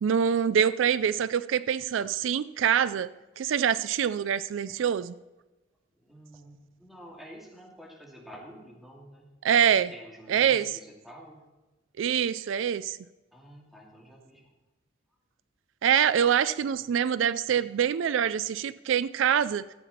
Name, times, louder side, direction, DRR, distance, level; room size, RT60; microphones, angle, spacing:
voice 1, 0.0-3.1 3.4-5.1 9.4-9.9 10.3-10.7 12.0-13.0 15.8-19.6, right 8 dB, 80° right, 16 dB, 0.3 m, -25 dB
voice 2, 5.9-9.3 9.9-11.4 13.3-14.5, equal, ahead, -4 dB, 2.4 m, -49 dB
14.0 x 8.3 x 4.3 m, 1.1 s
head